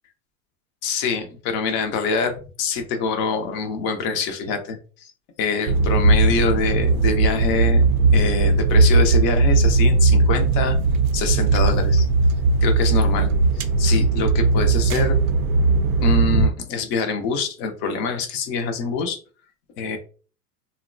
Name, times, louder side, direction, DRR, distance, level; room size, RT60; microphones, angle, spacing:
voice 1, 0.8-2.3 2.6-5.1 5.4-7.8 8.1-10.8 11.1-12.1 12.6-15.2 16.0-19.2 19.8-20.0, left 4 dB, 30° left, 5 dB, 0.4 m, -25 dB
sound 1, 5.7-16.5, right 3 dB, 65° right, 0.5 m, -18 dB
2.8 x 2.1 x 2.5 m, 0.38 s
hypercardioid pair, 120°, 46 cm